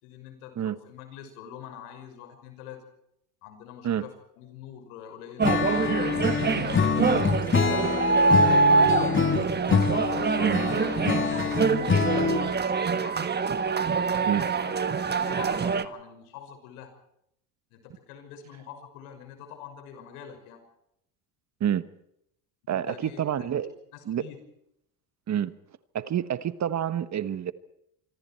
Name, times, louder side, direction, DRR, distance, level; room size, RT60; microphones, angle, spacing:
voice 1, 0.0-2.8 3.4-5.5 5.9-8.9 9.8-13.3 13.7-14.7 15.1-16.9 17.7-20.6 22.6-23.5 23.9-24.4, left 9 dB, 85° left, 6.0 m, -45 dB
Acoustic guitar / Strum, 5.4-12.6, left 5 dB, 25° left, 2.7 m, -26 dB
sound 1, 5.4-15.8, right 4 dB, 25° right, 1.4 m, -25 dB
voice 2, 22.7-23.7 24.1-24.2 25.3-25.5 25.9-27.5, right 10 dB, 40° right, 1.3 m, -28 dB
26.0 x 24.5 x 4.5 m
supercardioid pair, 100°, 43 cm